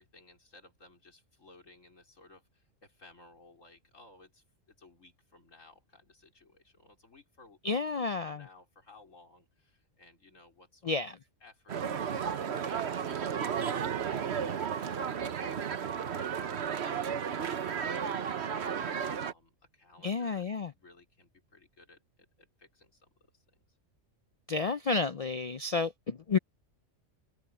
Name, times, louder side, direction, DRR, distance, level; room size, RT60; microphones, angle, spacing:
voice 1, 0.0-11.1 11.4-18.6 19.1-23.8 25.6-25.8, left 3 dB, 90° left, 4.8 m, -59 dB
voice 2, 7.6-8.4 10.8-11.2 20.0-20.7 24.5-26.4, left 4 dB, 65° left, 0.3 m, -31 dB
sound 1, 11.7-19.3, right 7 dB, 60° right, 1.2 m, -33 dB
omnidirectional pair, 1.3 m